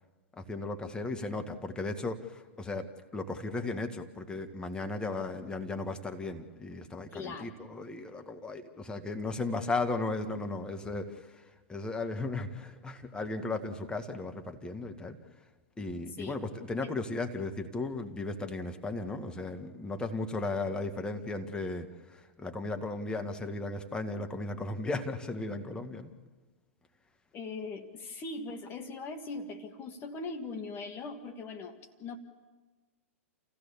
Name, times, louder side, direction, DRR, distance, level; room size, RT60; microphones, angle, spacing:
voice 1, 0.3-15.2 15.8-26.1, left 3 dB, 10° left, 5 dB, 1.7 m, -36 dB
voice 2, 7.1-7.6 16.2-16.3 16.8-16.9 27.3-32.2, left 3 dB, 30° left, 5 dB, 1.7 m, -40 dB
28.0 x 16.0 x 7.0 m, 1.3 s
hypercardioid pair, 105°, 7 cm